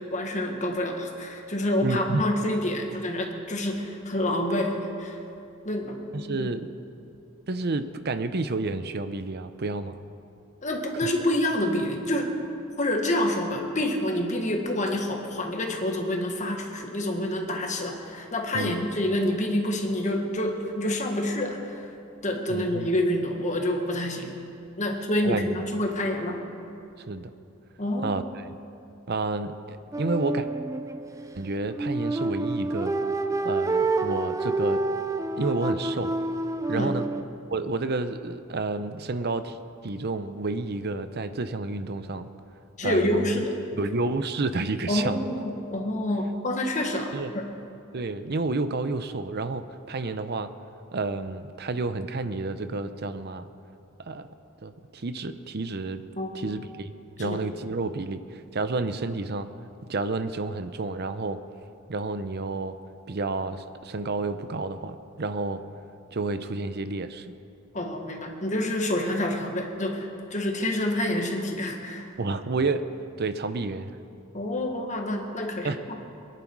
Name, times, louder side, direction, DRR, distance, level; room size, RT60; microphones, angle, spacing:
voice 1, 0.0-5.2 5.6-6.4 10.6-12.4 12.8-21.8 22.2-24.4 24.8-26.4 27.8-28.3 36.7-36.9 42.8-43.5 44.9-47.5 56.2-56.3 57.2-57.4 67.7-72.1 74.3-75.7, left 1 dB, 35° left, 2 dB, 1.7 m, -27 dB
voice 2, 1.8-2.2 6.1-6.7 7.5-10.0 18.5-18.8 22.5-22.9 25.2-25.7 27.1-27.3 28.0-28.5 29.1-30.5 31.4-32.9 33.4-34.8 35.4-36.1 36.7-37.0 37.5-39.6 39.8-42.3 42.8-43.4 43.7-45.3 47.1-47.3 47.9-50.5 50.9-53.5 54.0-54.3 54.6-56.0 56.3-56.9 57.2-59.5 59.9-61.4 61.9-62.8 63.1-65.6 66.1-67.3 72.2-72.8 73.2-73.9 75.6-75.8, right 3 dB, 50° right, 11 dB, 0.7 m, -30 dB
sound 1, 29.9-37.2, right 2 dB, 15° right, 0.4 m, -28 dB
22.0 x 11.0 x 4.7 m, 2.6 s
head